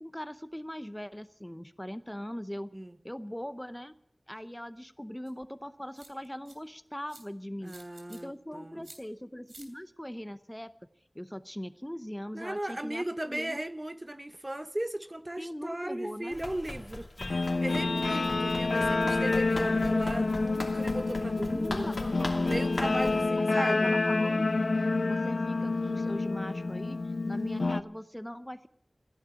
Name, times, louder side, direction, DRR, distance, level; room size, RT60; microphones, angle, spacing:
voice 1, 0.0-2.7 3.0-3.9 4.3-7.8 8.1-10.7 11.1-13.6 15.4-16.4 21.4-22.6 23.4-24.5 25.0-27.0 27.3-28.7, equal, 10° left, 0.7 m, -40 dB
sound 1, 5.3-5.4 5.9-6.5 7.1-7.2 7.7-8.2 8.8-9.0 9.5-9.7, right 2 dB, 85° right, 3.2 m, -51 dB
voice 2, 7.6-8.9 12.3-22.0 22.5-23.9, right 1 dB, 25° right, 0.8 m, -37 dB
Run, 16.3-23.2, left 2 dB, 55° left, 2.7 m, -40 dB
Guitar, 17.2-27.8, left 3 dB, 80° left, 0.6 m, -28 dB
15.0 x 10.5 x 9.0 m
wide cardioid pair, 55°, 0 cm